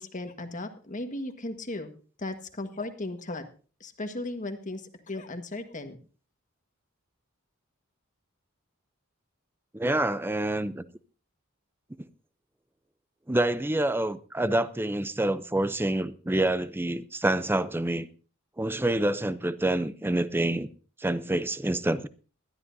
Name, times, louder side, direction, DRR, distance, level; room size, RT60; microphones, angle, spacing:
voice 1, 0.0-1.9 2.2-3.4 3.8-6.0, left 2 dB, 40° left, 1.5 m, -36 dB
voice 2, 9.7-10.8 13.3-18.1 18.6-20.7 21.0-22.1, right 1 dB, 10° right, 0.5 m, -27 dB
20.5 x 12.5 x 2.7 m
head